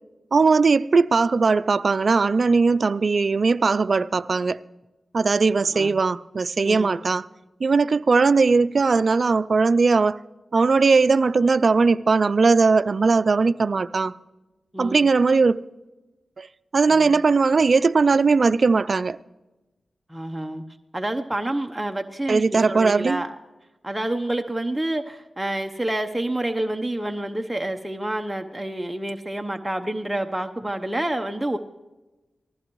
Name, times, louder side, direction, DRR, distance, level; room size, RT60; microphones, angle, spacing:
voice 1, 0.3-4.6 5.1-7.2 7.6-10.2 10.5-14.2 14.8-15.6 16.4-16.5 16.7-19.2 22.3-23.2, right 4 dB, 60° right, 0.4 m, -19 dB
voice 2, 6.6-7.1 14.7-15.1 16.9-17.1 20.1-20.6 20.9-23.3 23.8-31.6, right 1 dB, 10° right, 0.9 m, -28 dB
19.5 x 15.0 x 3.1 m
cardioid pair, 50°, 0 cm